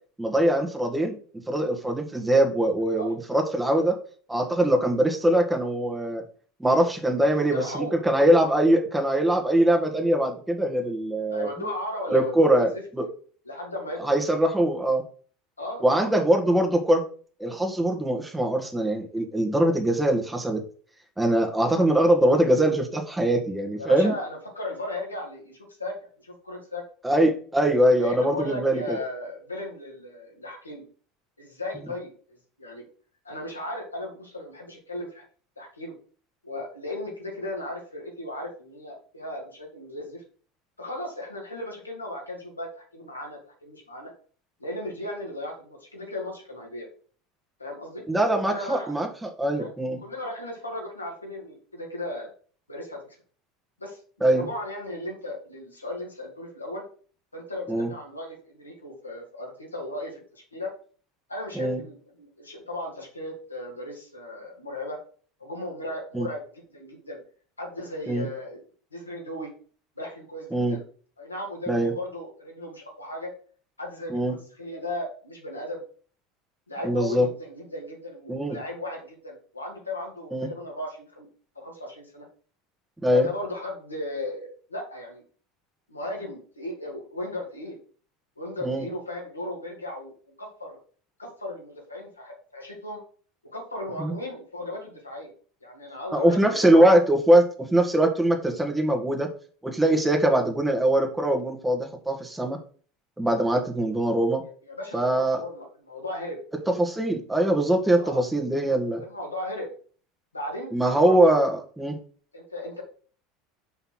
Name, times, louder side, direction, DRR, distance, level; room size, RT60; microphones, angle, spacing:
voice 1, 0.2-1.2 1.5-4.0 4.3-6.2 6.6-11.5 12.1-13.1 14.0-15.0 15.8-17.0 17.4-20.6 21.2-24.1 27.0-29.0 48.1-50.0 54.2-54.5 57.7-57.9 61.6-61.8 66.1-66.3 68.1-68.3 70.5-70.8 71.7-71.9 74.1-74.3 76.8-77.3 78.3-78.6 80.3-80.5 83.0-83.3 88.6-88.8 94.0-94.1 96.1-99.3 99.6-102.6 103.2-104.4 104.9-105.4 106.7-109.0 110.7-112.0, right 1 dB, 5° right, 2 dB, 1.8 m, -22 dB
voice 2, 7.2-7.9 11.3-12.8 13.5-14.1 15.6-16.1 23.8-26.8 28.0-30.8 31.4-32.1 32.6-32.8 33.2-35.2 35.6-35.9 36.4-40.2 40.8-44.1 44.6-46.9 47.6-48.0 48.4-48.9 49.5-49.7 50.0-52.3 52.7-53.0 53.8-56.8 57.3-60.7 61.3-65.0 65.4-67.2 67.6-68.6 68.9-69.5 70.0-70.8 71.2-73.3 73.8-75.8 76.7-81.3 81.6-82.3 83.1-85.2 85.9-87.8 88.4-90.1 90.4-90.8 91.2-93.0 93.5-95.3 95.6-96.8 104.4-106.4 108.0-108.2 109.0-109.7 110.3-111.5 112.3-112.8, left 1 dB, 85° left, -1 dB, 2.3 m, -36 dB
5.7 x 5.5 x 6.1 m, 0.43 s
figure-of-eight pair, 75°, 0 cm